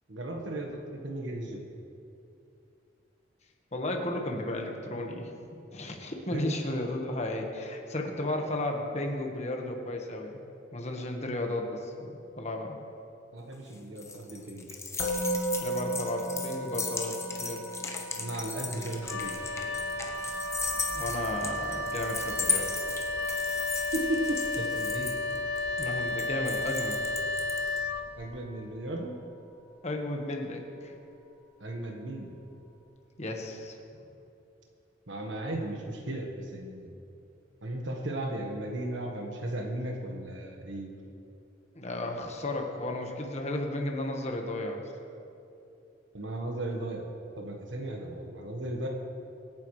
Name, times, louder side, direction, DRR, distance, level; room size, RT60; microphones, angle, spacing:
voice 1, 0.1-1.7 6.3-6.5 13.3-14.7 18.2-19.6 23.9-25.1 28.2-29.2 31.6-32.4 35.1-36.9 37.6-41.0 46.1-47.1 47.4-48.9, right 1 dB, 70° right, 1 dB, 1.4 m, -35 dB
voice 2, 3.7-5.3 5.7-10.4 10.7-12.8 15.6-17.6 20.9-22.7 25.8-27.0 29.8-30.6 33.2-33.8 41.7-44.9, left 1 dB, 35° left, 2 dB, 1.4 m, -34 dB
sound 1, 13.5-27.8, left 5 dB, 15° left, 0.9 m, -36 dB
Musical instrument, 15.0-26.1, right 2 dB, 65° left, 1.7 m, -38 dB
Wind instrument woodwind instrument, 19.0-28.5, left 2 dB, 90° left, 0.9 m, -32 dB
24.0 x 9.4 x 3.2 m, 2.7 s
head